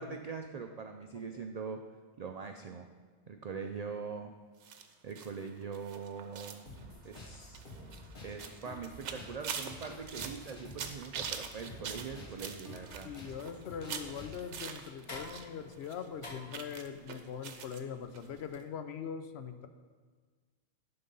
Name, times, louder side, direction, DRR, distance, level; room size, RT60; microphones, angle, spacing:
voice 1, 0.0-1.8 2.2-2.9 3.3-4.3 5.0-6.7 7.0-7.6 8.2-13.1, right 5 dB, 60° right, 5 dB, 0.4 m, -42 dB
sound 1, 4.6-15.5 15.7-17.8 18.1-18.3 18.5-18.6, right 7 dB, 90° right, 1.0 m, -44 dB
sound 2, 6.7-14.7, left 1 dB, 50° left, 1.5 m, -50 dB
sound 3, 11.5-18.5, left 2 dB, 30° left, 1.4 m, -54 dB
voice 2, 13.0-19.7, left 7 dB, 70° left, 8 dB, 0.9 m, -42 dB
11.5 x 3.9 x 5.3 m, 1.5 s
omnidirectional pair, 1.1 m